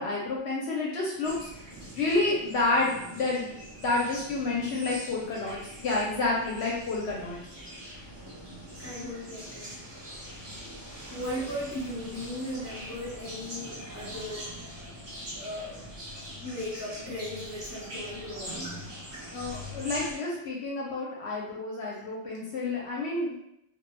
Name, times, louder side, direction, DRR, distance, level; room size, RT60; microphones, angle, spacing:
voice 1, 0.0-1.7 1.9-3.5 3.8-7.4 19.3-23.4, left 3 dB, 65° left, -4 dB, 0.8 m, -29 dB
sound 1, 1.2-20.2, equal, 35° right, 0.4 m, -42 dB
voice 2, 8.8-9.8 11.1-14.8 15.3-15.8 16.4-18.7, left 1 dB, 15° left, -10 dB, 0.6 m, -37 dB
2.1 x 2.1 x 3.1 m, 0.80 s
omnidirectional pair, 1.3 m